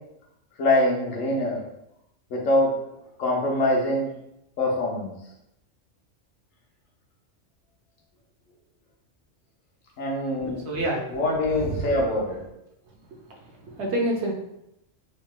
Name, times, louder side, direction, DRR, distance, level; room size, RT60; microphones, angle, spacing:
voice 1, 0.6-1.6 2.3-2.7 3.2-4.1 4.6-5.1 10.0-10.7 11.1-12.4, left 1 dB, 85° left, -2 dB, 1.1 m, -24 dB
voice 2, 10.5-11.0 13.8-14.3, right 1 dB, 65° right, -1 dB, 0.9 m, -26 dB
3.1 x 2.8 x 2.2 m, 0.81 s
omnidirectional pair, 1.3 m